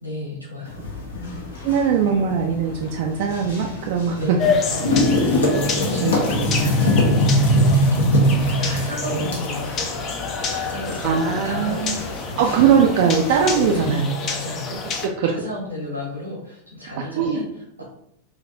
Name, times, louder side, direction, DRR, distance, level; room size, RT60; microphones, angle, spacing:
voice 1, 0.0-0.8 1.1-1.4 4.1-12.6 13.5-17.8, left 1 dB, 90° right, -3 dB, 1.2 m, -34 dB
sound 1, 0.7-13.9, equal, 70° left, 0.9 m, -23 dB
voice 2, 1.6-4.4 6.0-6.2 9.1-9.4 11.0-12.0 12.4-14.1 15.0-15.3 17.0-17.4, right 6 dB, 50° right, 1 dB, 0.3 m, -20 dB
sound 2, 4.4-15.1, left 5 dB, 30° left, 0.5 m, -28 dB
3.4 x 2.7 x 2.5 m, 0.74 s
figure-of-eight pair, 90°, 0 cm